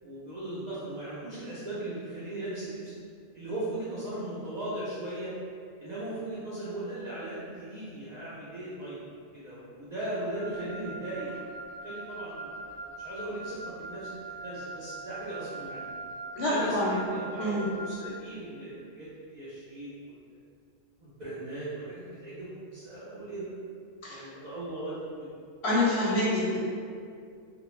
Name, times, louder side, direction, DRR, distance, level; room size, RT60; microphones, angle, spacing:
voice 1, 0.0-2.9 3.3-5.3 5.8-9.1 9.3-11.3 11.8-15.9 16.5-20.1 21.0-23.5 24.1-25.0, right 1 dB, 85° right, -10 dB, 0.3 m, -38 dB
Wind instrument woodwind instrument, 10.3-18.1, right 2 dB, 65° right, 0.8 m, -42 dB
voice 2, 16.3-16.9 17.4-17.7 24.0-24.3 25.6-26.6, left 1 dB, 65° left, -6 dB, 0.7 m, -27 dB
2.2 x 2.0 x 3.0 m, 2.3 s
omnidirectional pair, 1.4 m